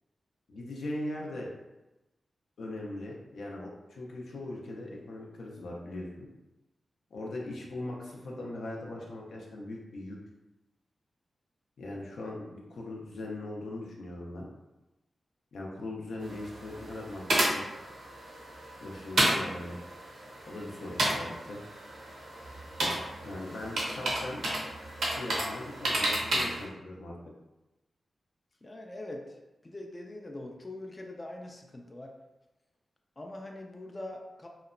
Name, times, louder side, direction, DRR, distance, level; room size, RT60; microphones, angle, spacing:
voice 1, 0.5-1.5 2.6-6.3 7.1-10.2 11.8-14.5 15.5-17.2 17.5-17.6 18.8-19.8 20.4-21.6 23.2-24.4 25.0-27.1, left 1 dB, 85° left, -2 dB, 0.5 m, -40 dB
sound 1, 16.2-26.6, right 1 dB, 85° right, 0.7 m, -32 dB
voice 2, 28.6-32.1 33.2-34.5, left 1 dB, 25° left, 1 dB, 0.3 m, -43 dB
2.8 x 2.1 x 2.5 m, 1.0 s
cardioid pair, 80°, 0 cm